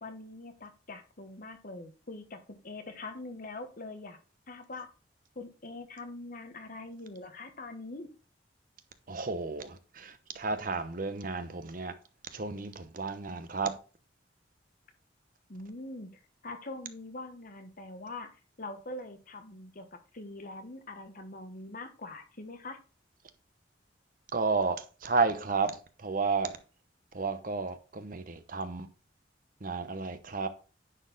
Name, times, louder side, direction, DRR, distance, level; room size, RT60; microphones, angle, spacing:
voice 1, 0.0-2.4 2.6-4.2 4.5-4.9 5.3-8.1 15.5-18.3 18.6-22.8, left 2 dB, 50° left, 1.2 m, -43 dB
voice 2, 9.1-11.9 12.3-13.8 24.3-26.6 27.1-28.9 29.6-30.5, right 4 dB, 50° right, 0.9 m, -32 dB
9.9 x 4.5 x 4.0 m
head